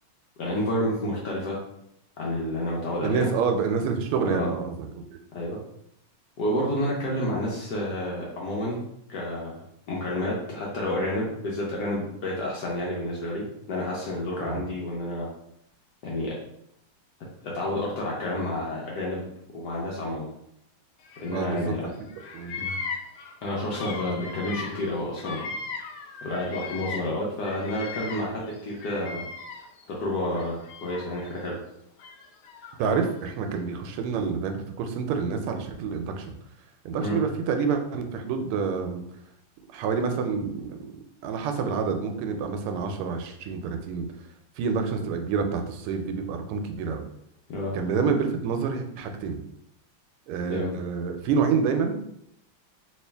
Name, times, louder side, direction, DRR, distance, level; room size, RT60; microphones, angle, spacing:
voice 1, 0.4-1.6 2.2-3.3 4.2-4.5 5.3-5.6 6.4-8.8 9.1-15.3 16.0-16.3 17.4-19.3 19.5-20.3 21.2-21.9 22.6-22.8 23.4-25.5 26.2-29.2 29.9-31.6 37.0-37.2 47.5-47.7 50.5-50.8, left 1 dB, 65° left, -4 dB, 1.1 m, -30 dB
voice 2, 3.0-4.7 14.4-14.6 21.3-21.8 22.3-22.5 24.1-24.2 32.8-36.3 36.8-39.0 39.7-40.8 41.2-44.1 44.6-47.0 47.7-49.4 50.3-52.0, right 5 dB, 90° right, 5 dB, 1.5 m, -27 dB
Bird vocalization bird call bird song, 21.0-21.8 22.1-27.2 27.4-29.8 30.3-31.3 32.0-33.1, left 4 dB, 85° left, 0.9 m, -38 dB
3.1 x 3.1 x 3.3 m, 0.75 s
omnidirectional pair, 2.4 m